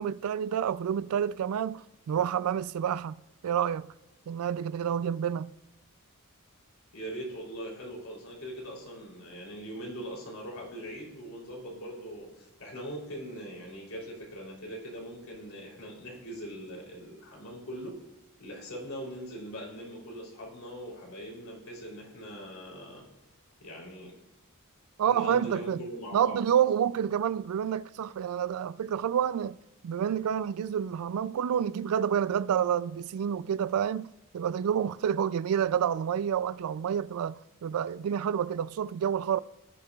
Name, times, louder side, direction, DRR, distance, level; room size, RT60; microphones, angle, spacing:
voice 1, 0.0-3.2 3.4-3.9 4.3-5.5 25.0-25.8 26.1-29.6 29.8-39.4, right 8 dB, 75° right, 0.3 m, -29 dB
voice 2, 6.9-18.0 18.4-23.1 23.6-24.1 25.1-26.4, equal, 70° left, 3.2 m, -41 dB
17.5 x 6.6 x 2.3 m
head